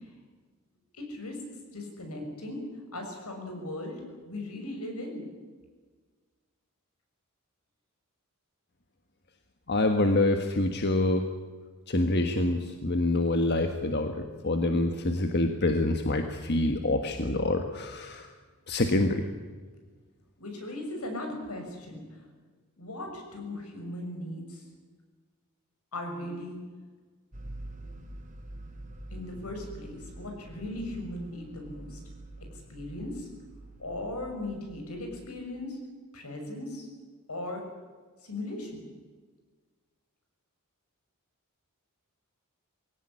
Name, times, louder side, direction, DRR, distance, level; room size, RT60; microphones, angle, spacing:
voice 1, 0.9-1.4 1.7-2.7 2.9-5.3 20.4-22.0 22.8-24.6 25.9-26.6 29.1-32.0 32.4-33.3 33.8-35.8 36.1-36.9 37.3-37.6 38.2-38.8, left 1 dB, 80° left, 3 dB, 6.6 m, -38 dB
voice 2, 9.7-11.3 11.9-18.3 18.7-19.2, left 2 dB, 50° left, 6 dB, 1.5 m, -26 dB
sound 1, 27.3-35.4, right 1 dB, 35° right, 3.1 m, -46 dB
22.0 x 17.0 x 10.0 m, 1.4 s
head